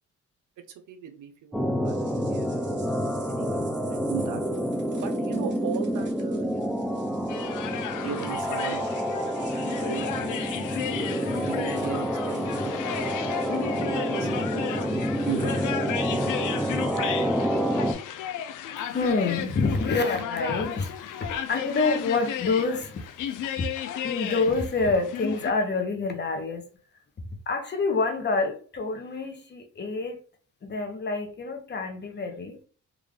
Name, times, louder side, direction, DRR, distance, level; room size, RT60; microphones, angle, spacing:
voice 1, 0.7-2.8 3.2-4.4 5.0-6.8 8.0-8.9 9.5-10.3 11.4-15.6, right 9 dB, 80° right, 0.7 m, -38 dB
sound 1, 1.5-17.9, equal, ahead, 0.4 m, -28 dB
sound 2, 1.8-17.0, right 4 dB, 35° right, 1.1 m, -51 dB
sound 3, 7.3-25.5, left 10 dB, 85° left, 0.5 m, -34 dB
voice 2, 18.8-23.7 24.0-26.6 27.3-30.2 30.6-32.6, left 3 dB, 35° left, 0.8 m, -27 dB
3.7 x 2.4 x 3.3 m
cardioid pair, 110°, 30 cm